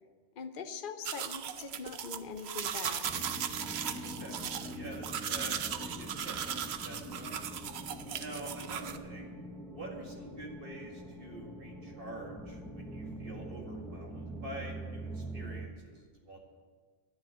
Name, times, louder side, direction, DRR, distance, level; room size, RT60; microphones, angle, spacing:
voice 1, 0.4-3.2, left 5 dB, 45° left, 7 dB, 1.0 m, -42 dB
sound 1, 1.0-9.0, right 8 dB, 65° right, 0.9 m, -37 dB
sound 2, 3.0-15.7, right 1 dB, ahead, 1.0 m, -44 dB
voice 2, 4.0-4.4 4.7-6.6 6.8-7.4 8.2-9.3 9.7-16.4, right 1 dB, 45° right, 0 dB, 2.3 m, -46 dB
11.5 x 9.8 x 8.0 m, 1.5 s
omnidirectional pair, 1.3 m